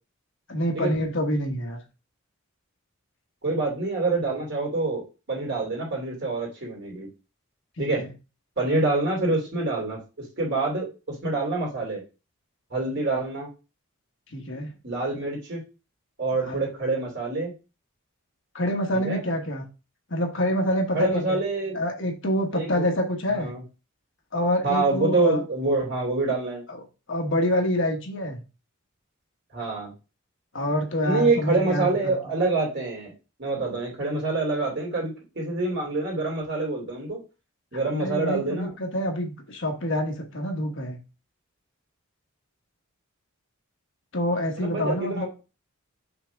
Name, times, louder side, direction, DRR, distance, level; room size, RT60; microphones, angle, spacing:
voice 1, 0.5-1.8 7.8-8.1 14.3-14.7 16.5-16.6 18.5-19.7 20.1-21.4 21.7-23.5 24.3-25.4 26.7-26.8 27.1-28.4 30.5-32.2 38.0-41.0 44.1-45.3, left 1 dB, 60° left, 3 dB, 1.3 m, -26 dB
voice 2, 3.4-7.1 7.8-8.0 8.6-10.0 10.4-12.0 12.7-13.5 14.8-15.6 16.2-17.5 18.9-19.2 20.9-21.8 22.5-22.8 23.3-23.6 24.6-26.6 29.5-29.9 31.0-33.1 33.4-37.2 37.7-38.7 44.6-45.3, right 3 dB, 55° right, -1 dB, 3.0 m, -26 dB
5.9 x 3.5 x 4.6 m, 0.31 s
head